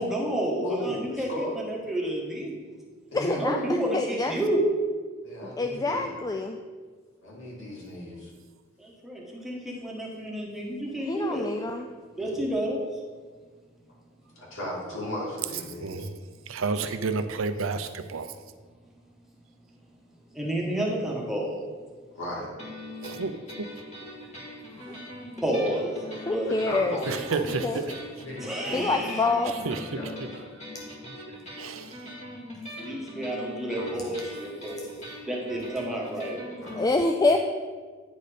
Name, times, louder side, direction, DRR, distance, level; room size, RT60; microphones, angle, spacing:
voice 1, 0.0-1.3 1.5-2.5 3.4-4.6 9.0-11.4 12.2-12.8 20.3-21.5 25.4-25.9 26.2-26.5 26.8-27.1 28.4-29.3 32.8-34.8 35.3-36.4, right 1 dB, ahead, -3 dB, 1.3 m, -30 dB
voice 2, 0.6-1.6 3.1-3.7 5.2-6.2 7.2-8.3 12.1-12.5 14.4-16.0 22.1-22.5 26.5-27.9 28.3-28.7 29.9-30.4 31.7-31.8 33.8-34.2 36.6-36.9, left 1 dB, 70° left, -4 dB, 2.5 m, -36 dB
voice 3, 3.1-4.3 5.4-6.6 11.0-11.9 24.9-25.0 26.2-27.0 27.6-27.8 28.7-29.5 36.8-37.4, left 3 dB, 20° left, 4 dB, 0.3 m, -26 dB
voice 4, 15.8-16.2 16.5-18.4 23.0-23.7 27.1-28.0 29.4-30.3 31.5-32.1, right 4 dB, 80° right, 10 dB, 0.6 m, -31 dB
sound 1, 22.6-36.8, left 1 dB, 35° left, 2.1 m, -41 dB
9.7 x 4.2 x 5.0 m, 1.5 s
head